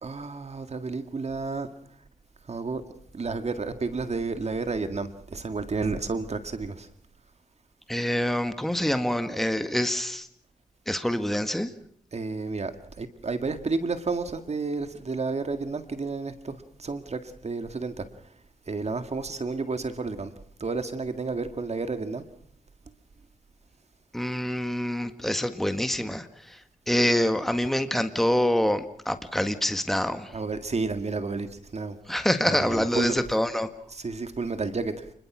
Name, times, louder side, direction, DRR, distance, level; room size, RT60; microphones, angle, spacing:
voice 1, 0.0-1.7 2.4-2.8 3.1-6.9 12.1-18.4 18.7-20.3 20.6-22.2 30.3-32.1 32.4-33.2 33.9-35.1, right 4 dB, 50° right, 2.0 m, -31 dB
voice 2, 7.9-10.3 10.9-11.7 24.1-26.6 26.9-30.4 32.1-33.7, left 1 dB, ahead, 1.6 m, -26 dB
29.5 x 21.5 x 6.2 m
wide cardioid pair, 90°, 14 cm